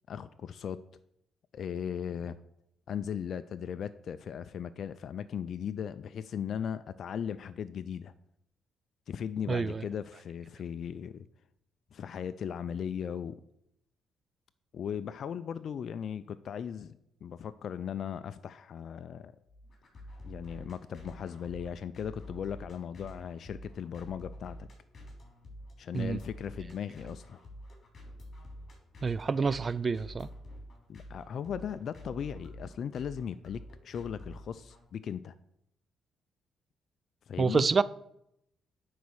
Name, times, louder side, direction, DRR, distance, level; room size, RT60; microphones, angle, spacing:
voice 1, 0.1-0.8 1.5-2.4 2.9-8.1 9.1-11.3 11.9-13.4 14.7-19.3 20.2-24.7 25.8-27.4 30.9-35.3 37.3-37.7, left 8 dB, 60° left, 0.4 m, -37 dB
voice 2, 9.5-9.8 25.9-26.2 29.0-30.3 37.4-37.8, right 4 dB, 35° right, 0.3 m, -28 dB
sound 1, 19.5-34.9, equal, 45° left, 3.3 m, -48 dB
9.3 x 4.1 x 6.3 m
cardioid pair, 90°, 0 cm